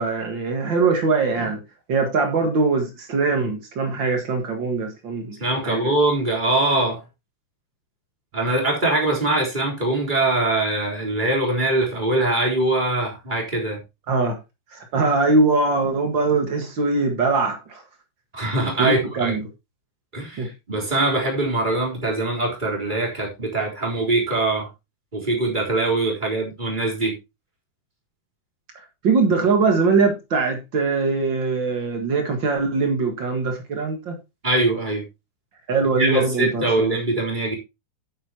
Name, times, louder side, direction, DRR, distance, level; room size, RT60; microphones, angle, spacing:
voice 1, 0.0-1.6 1.9-5.4 5.6-5.9 14.1-14.3 14.7-17.8 18.8-19.4 20.4-20.5 29.0-34.2 35.7-36.9, right 3 dB, 80° right, 1.0 m, -22 dB
voice 2, 5.4-7.0 8.3-13.8 18.3-19.3 20.1-24.7 25.1-27.1 34.4-35.0 36.0-37.6, right 2 dB, 10° right, 3.5 m, -22 dB
11.0 x 9.2 x 2.9 m
omnidirectional pair, 5.1 m